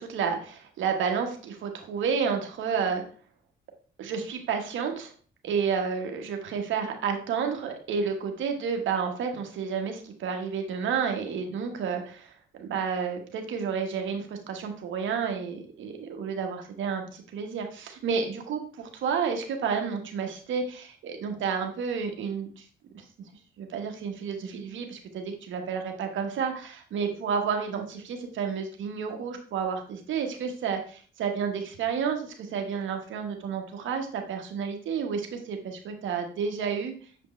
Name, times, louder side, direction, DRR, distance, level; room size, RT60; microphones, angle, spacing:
voice 1, 0.0-3.0 4.0-5.1 5.4-22.6 22.9-23.0 23.6-36.9, right 6 dB, 75° right, 4 dB, 1.4 m, -31 dB
7.3 x 5.1 x 3.2 m, 0.43 s
cardioid pair, 90°, 20 cm